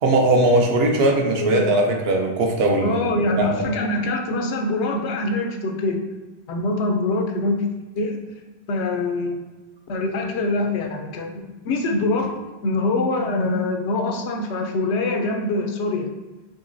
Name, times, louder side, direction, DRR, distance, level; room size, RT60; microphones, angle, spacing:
voice 1, 0.0-3.7, right 2 dB, 70° right, 2 dB, 0.8 m, -20 dB
voice 2, 2.8-6.0 6.5-7.6 8.0-8.2 8.7-9.4 9.9-12.3 12.6-16.1, left 2 dB, 85° left, 3 dB, 0.9 m, -24 dB
3.9 x 2.8 x 2.6 m, 1.2 s
omnidirectional pair, 1.1 m